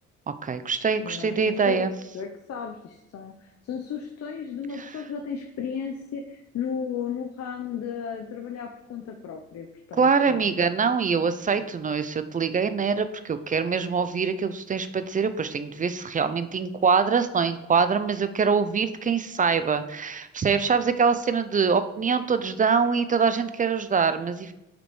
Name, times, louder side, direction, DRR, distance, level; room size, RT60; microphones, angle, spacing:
voice 1, 0.4-1.9 4.7-5.0 9.9-24.5, right 5 dB, 25° right, 11 dB, 0.4 m, -24 dB
voice 2, 1.0-1.8 2.1-10.5, left 7 dB, 55° left, 3 dB, 0.7 m, -34 dB
7.7 x 5.1 x 3.1 m, 0.92 s
cardioid pair, 90°, 30 cm